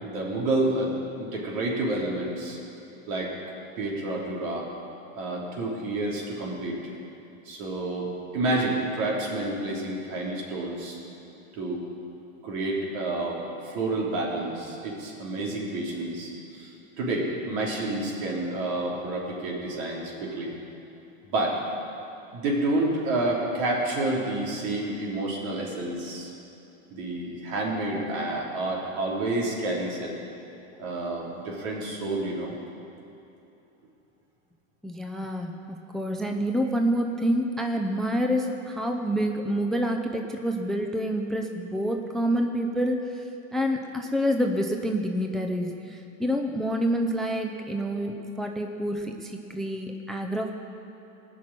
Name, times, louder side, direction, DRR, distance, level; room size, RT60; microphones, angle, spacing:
voice 1, 0.0-2.6 3.1-3.3 3.8-4.7 5.2-6.8 7.5-11.0 11.5-11.8 12.4-20.5 21.2-21.6 22.3-26.3 26.9-30.2 30.8-32.5, right 2 dB, 65° right, -3 dB, 3.5 m, -29 dB
voice 2, 34.8-43.3 43.5-50.5, equal, ahead, 3 dB, 0.6 m, -27 dB
18.0 x 6.2 x 8.9 m, 2.9 s
supercardioid pair, 120°, 41 cm